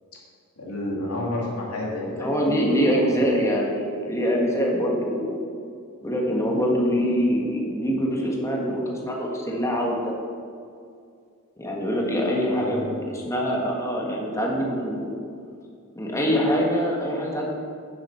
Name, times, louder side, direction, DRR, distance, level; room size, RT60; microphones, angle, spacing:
voice 1, 0.6-3.3 12.2-12.9, left 1 dB, 90° left, -3 dB, 2.4 m, -31 dB
voice 2, 2.1-5.4 6.0-10.1 11.6-15.2 15.9-17.5, equal, 15° left, -1 dB, 1.7 m, -24 dB
9.8 x 7.5 x 5.8 m, 2.3 s
head